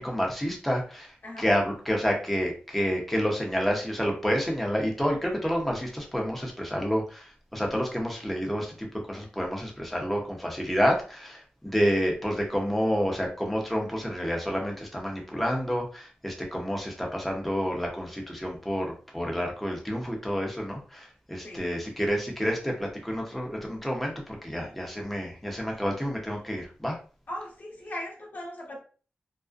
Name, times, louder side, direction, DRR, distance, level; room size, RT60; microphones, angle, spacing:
voice 1, 0.0-27.0, equal, 5° left, 0 dB, 0.7 m, -29 dB
voice 2, 27.3-28.8, left 1 dB, 50° left, -2 dB, 1.0 m, -38 dB
2.4 x 2.1 x 2.4 m, 0.39 s
wide cardioid pair, 80°, 4 cm